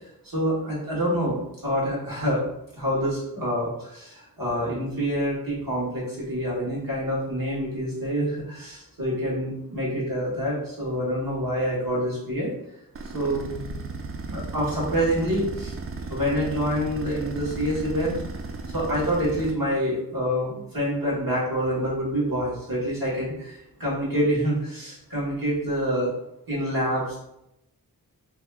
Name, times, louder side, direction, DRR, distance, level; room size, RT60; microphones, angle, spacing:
voice 1, 0.2-2.4 2.7-12.5 13.1-13.4 14.3-15.7 16.1-18.2 18.7-26.1 26.5-27.2, equal, 70° right, -6 dB, 1.4 m, -26 dB
sound 1, 12.9-19.5, right 3 dB, 40° right, 0.4 m, -35 dB
2.8 x 2.4 x 3.3 m, 0.82 s
wide cardioid pair, 60°, 36 cm